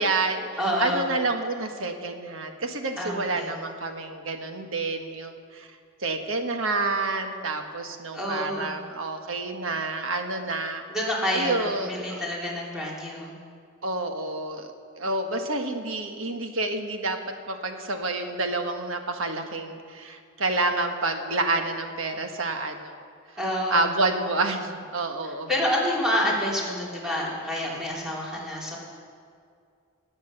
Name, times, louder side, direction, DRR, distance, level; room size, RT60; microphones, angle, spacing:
voice 1, 0.0-0.5 0.8-5.7 6.0-10.8 11.3-12.2 13.8-17.2 17.5-23.0 23.7-25.5, right 2 dB, 65° right, 5 dB, 1.3 m, -28 dB
voice 2, 0.6-1.1 3.0-3.5 8.1-8.8 10.9-13.3 23.4-23.8 25.2-28.8, equal, 5° right, -5 dB, 3.1 m, -28 dB
19.0 x 8.0 x 6.7 m, 2.3 s
head